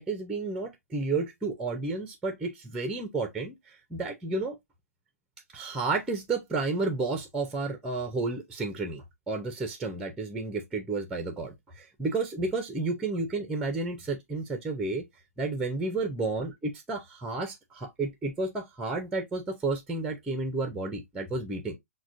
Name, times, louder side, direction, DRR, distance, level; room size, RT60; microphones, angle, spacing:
voice 1, 0.0-4.6 5.5-15.0 15.4-21.8, right 3 dB, 5° right, 0.5 m, -31 dB
5.8 x 2.2 x 2.4 m
hypercardioid pair, 150°, 8 cm